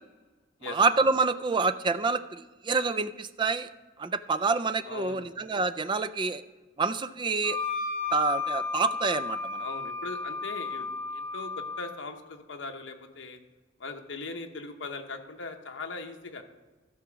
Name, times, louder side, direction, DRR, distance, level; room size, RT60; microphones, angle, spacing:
voice 1, 0.6-3.7 4.0-6.4 6.8-7.6 8.1-9.6, right 4 dB, 25° right, 12 dB, 0.3 m, -27 dB
voice 2, 4.8-5.3 9.6-13.4 13.8-16.4, left 3 dB, 70° left, 4 dB, 1.0 m, -40 dB
Wind instrument woodwind instrument, 7.4-11.9, left 4 dB, 65° right, 3.2 m, -33 dB
13.0 x 4.9 x 6.2 m, 1.2 s
head